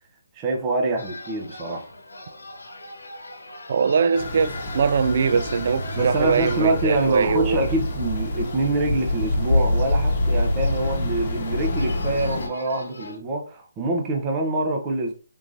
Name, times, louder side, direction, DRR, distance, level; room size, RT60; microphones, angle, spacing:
voice 1, 0.3-1.9 6.0-15.1, right 2 dB, 20° right, 0.7 m, -25 dB
sound 1, 1.0-13.2, left 1 dB, 90° left, 0.9 m, -42 dB
voice 2, 3.7-7.6, right 6 dB, 50° right, 0.3 m, -22 dB
sound 2, 4.1-12.5, left 1 dB, 45° left, 0.9 m, -26 dB
3.7 x 2.9 x 2.6 m
hypercardioid pair, 160°, 0 cm